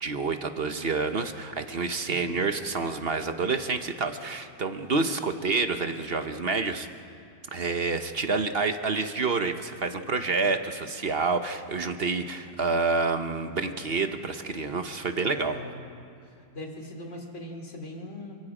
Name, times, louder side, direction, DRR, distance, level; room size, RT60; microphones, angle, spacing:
voice 1, 0.0-6.9 7.5-15.6, right 4 dB, 45° right, 8 dB, 1.0 m, -28 dB
voice 2, 2.0-2.4 15.2-15.8 16.2-18.3, left 1 dB, 45° left, 2 dB, 3.3 m, -40 dB
28.5 x 24.5 x 5.0 m, 2.5 s
omnidirectional pair, 1.8 m